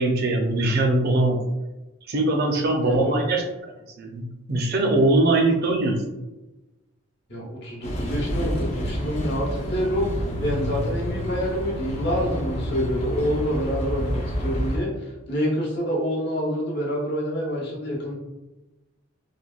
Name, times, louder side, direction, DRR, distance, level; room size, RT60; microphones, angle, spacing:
voice 1, 0.0-1.4 2.1-3.4 4.0-6.0, right 2 dB, 50° right, 2 dB, 0.4 m, -21 dB
voice 2, 2.8-3.2 7.3-18.2, equal, 55° left, -3 dB, 0.8 m, -27 dB
sound 1, 7.8-14.8, equal, 30° left, 0.4 m, -29 dB
3.3 x 2.1 x 2.3 m, 1.0 s
head